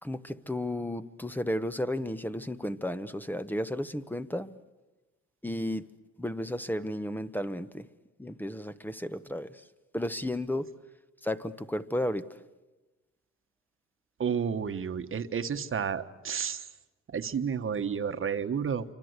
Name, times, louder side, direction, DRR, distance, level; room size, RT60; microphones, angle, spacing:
voice 1, 0.0-4.6 5.4-5.9 6.2-7.8 8.2-9.5 9.9-10.7 11.2-12.3, left 1 dB, 5° left, 1.0 m, -33 dB
voice 2, 14.2-16.7 17.1-18.8, right 7 dB, 45° right, 1.4 m, -31 dB
28.5 x 25.0 x 8.1 m
cardioid pair, 90°, 30 cm